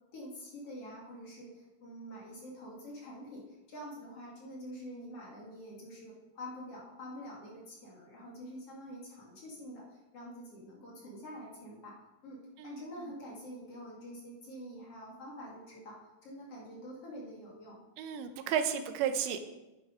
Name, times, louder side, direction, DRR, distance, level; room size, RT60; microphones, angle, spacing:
voice 1, 0.1-12.0 12.2-17.8, equal, 40° left, -4 dB, 2.4 m, -46 dB
voice 2, 18.0-19.4, right 8 dB, 80° right, 7 dB, 2.8 m, -32 dB
9.6 x 9.5 x 5.1 m, 1.0 s
omnidirectional pair, 5.6 m